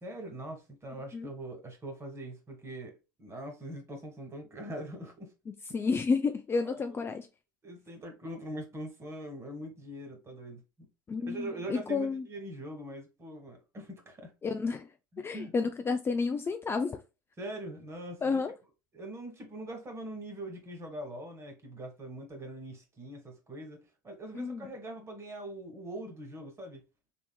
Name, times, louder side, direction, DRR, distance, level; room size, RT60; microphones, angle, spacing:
voice 1, 0.0-5.3 6.7-7.1 7.6-10.9 11.2-14.3 15.1-15.5 17.4-18.4 18.9-26.8, right 1 dB, 25° right, 1.7 m, -42 dB
voice 2, 5.5-7.3 11.1-12.2 14.4-14.9 15.2-17.0 18.2-18.5 24.3-24.7, left 4 dB, 20° left, 0.4 m, -31 dB
3.9 x 3.5 x 2.3 m
hypercardioid pair, 80°, 12 cm